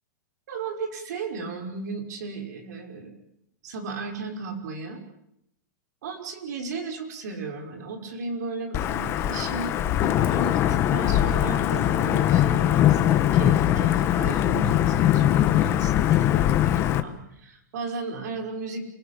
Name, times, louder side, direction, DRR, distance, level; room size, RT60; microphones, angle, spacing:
voice 1, 0.5-3.1 3.6-5.0 6.0-18.9, right 4 dB, 65° right, 4 dB, 5.7 m, -35 dB
Wind / Thunder / Rain, 8.7-17.0, left 12 dB, 25° left, 1.4 m, -21 dB
28.5 x 18.5 x 8.9 m, 0.79 s
supercardioid pair, 160°, 10 cm